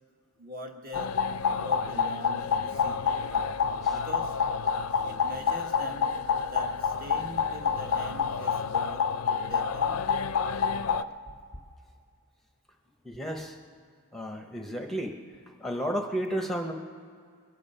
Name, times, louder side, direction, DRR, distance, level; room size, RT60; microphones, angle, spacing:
voice 1, 0.4-1.2 1.5-3.0 3.9-4.4 5.0-6.1 6.4-9.0 9.4-10.0, equal, 40° right, 3 dB, 1.3 m, -42 dB
sound 1, 0.9-11.0, left 6 dB, 85° left, 0.5 m, -28 dB
voice 2, 13.0-13.6 14.1-15.2 15.6-16.7, equal, ahead, 3 dB, 0.7 m, -32 dB
22.0 x 9.2 x 5.5 m, 2.2 s
head